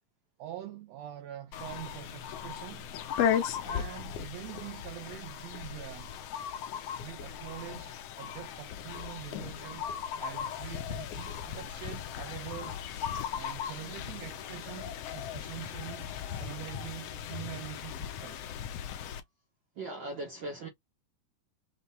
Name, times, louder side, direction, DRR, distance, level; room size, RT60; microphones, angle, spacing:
voice 1, 0.4-2.9 3.6-6.1 7.0-9.9 10.2-12.8 13.3-18.5, right 14 dB, 90° right, 1.4 m, -44 dB
sound 1, 1.5-19.2, left 8 dB, 85° left, 1.4 m, -37 dB
voice 2, 19.8-20.7, right 2 dB, 70° right, 1.1 m, -38 dB
6.2 x 2.1 x 4.0 m
omnidirectional pair, 3.8 m